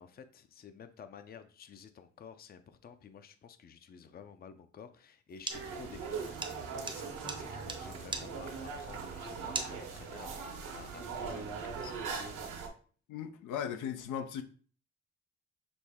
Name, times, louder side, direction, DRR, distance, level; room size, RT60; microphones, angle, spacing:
voice 1, 0.0-12.0, left 6 dB, 30° left, 0.5 m, -52 dB
sound 1, 5.4-10.3, right 3 dB, 15° right, 0.6 m, -41 dB
sound 2, 5.5-12.7, right 5 dB, 80° right, 1.1 m, -40 dB
voice 2, 13.1-14.4, left 8 dB, 85° left, 0.6 m, -37 dB
6.0 x 2.1 x 3.5 m
cardioid pair, 90°, 30 cm